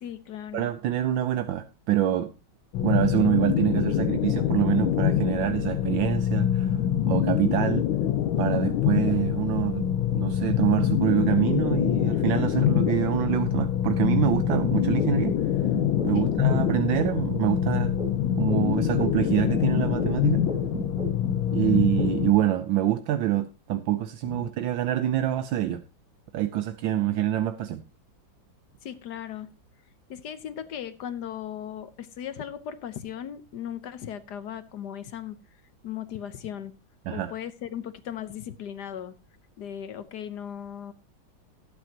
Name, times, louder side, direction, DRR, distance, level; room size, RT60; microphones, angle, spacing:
voice 1, 0.0-0.7 16.1-16.3 24.3-24.5 28.8-29.5 30.1-35.4 35.8-36.7 37.1-39.2 39.6-40.9, left 9 dB, 65° left, 1.4 m, -37 dB
voice 2, 0.5-2.3 2.8-6.8 7.1-7.9 8.4-15.4 16.0-18.0 18.4-20.5 21.5-25.8 26.3-27.8 37.1-37.3, right 12 dB, 80° right, 1.5 m, -26 dB
sound 1, 2.7-22.3, left 10 dB, 85° left, 1.6 m, -25 dB
sound 2, 14.5-17.4 17.7-21.4 21.7-22.4, right 1 dB, 5° right, 1.5 m, -35 dB
17.0 x 8.6 x 2.9 m
omnidirectional pair, 2.1 m